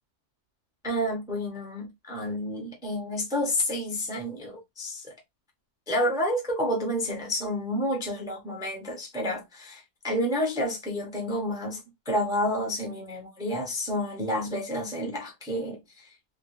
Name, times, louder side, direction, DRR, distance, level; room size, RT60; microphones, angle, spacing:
voice 1, 0.8-5.1 5.9-11.8 12.1-16.1, equal, 5° right, 0.6 m, -30 dB
3.2 x 2.2 x 3.0 m
omnidirectional pair, 1.7 m